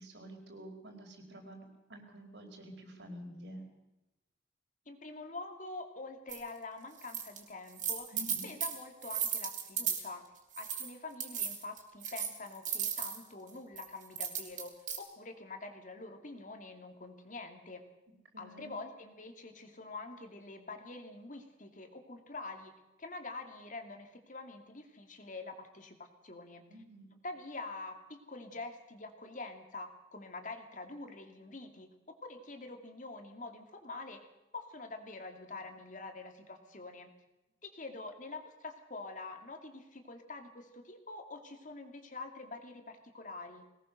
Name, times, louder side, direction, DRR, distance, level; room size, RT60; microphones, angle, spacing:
voice 1, 0.0-3.6 8.1-8.5 18.3-18.7 26.7-27.1, right 1 dB, 90° right, 3 dB, 4.8 m, -49 dB
voice 2, 4.9-8.1 8.4-10.3 10.6-17.8 18.4-22.7 23.0-26.7 27.2-34.2 34.5-37.1 37.6-43.7, left 3 dB, 45° left, 6 dB, 2.6 m, -46 dB
sound 1, 6.3-6.4 7.0-7.4 7.7-10.1 10.5-10.9 11.2-13.2 13.8-15.0, right 8 dB, 45° right, 3.7 m, -35 dB
21.5 x 18.5 x 6.6 m, 0.97 s
head